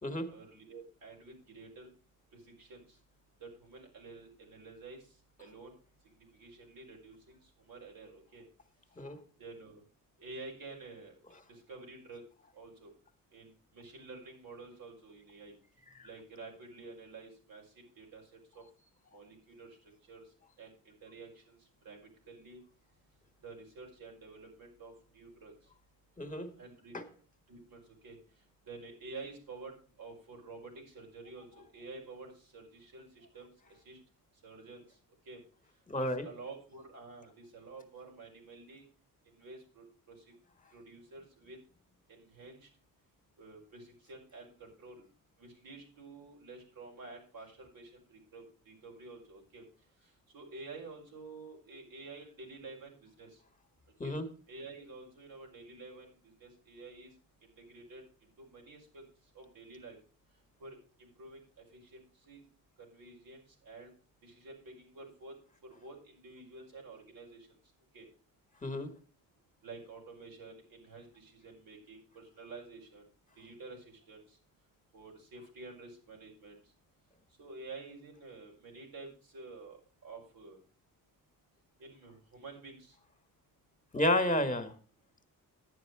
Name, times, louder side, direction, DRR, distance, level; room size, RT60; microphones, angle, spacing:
voice 1, 0.3-1.9 2.6-2.8 3.4-5.0 5.4-5.7 6.2-7.4 7.7-8.4 9.4-9.8 10.2-11.1 11.5-12.2 12.5-12.9 13.3-15.5 16.0-17.6 18.0-18.6 19.1-19.8 20.1-20.2 20.6-20.7 21.0-21.6 21.8-22.6 23.4-25.5 26.6-27.0 27.5-28.2 28.7-33.5 33.9-34.0 34.4-34.8 35.3-35.4 36.0-38.9 39.4-40.2 40.7-41.6 42.1-42.7 43.4-45.1 45.4-49.6 50.3-53.3 54.0-54.1 54.5-56.1 56.4-57.1 57.6-58.0 58.4-59.0 59.4-60.0 60.6-61.4 61.7-62.4 62.8-63.9 64.2-65.4 65.6-67.5 67.9-68.1 69.6-73.0 73.4-74.2 74.9-76.6 77.4-80.6 81.8-82.9, right 3 dB, 90° right, 0 dB, 5.2 m, -50 dB
voice 2, 26.2-26.5 26.9-27.0 35.9-36.3 54.0-54.3 68.6-68.9 83.9-84.7, left 1 dB, 25° left, 9 dB, 1.6 m, -31 dB
11.0 x 9.4 x 4.8 m, 0.38 s
wide cardioid pair, 125°, 34 cm